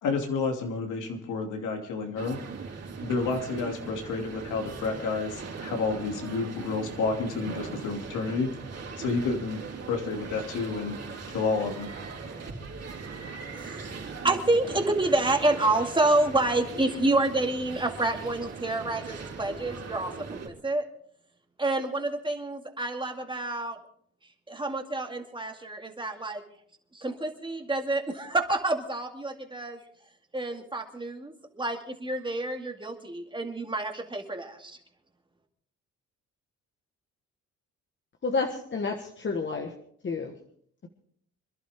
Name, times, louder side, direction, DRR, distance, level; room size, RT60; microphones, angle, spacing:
voice 1, 0.0-2.4 3.0-8.5 9.0-9.6 9.9-11.0 11.3-11.9, left 4 dB, 85° left, 2 dB, 2.8 m, -30 dB
sound 1, 2.2-20.5, right 4 dB, 55° right, 4.2 m, -40 dB
voice 2, 13.5-20.9 21.6-23.8 24.5-26.4 26.9-29.8 30.3-34.8, right 2 dB, 15° right, 3 dB, 2.3 m, -28 dB
voice 3, 38.2-39.7 40.0-40.3, left 4 dB, 40° left, 4 dB, 1.5 m, -30 dB
26.5 x 11.5 x 3.7 m, 0.62 s
cardioid pair, 90°, 30 cm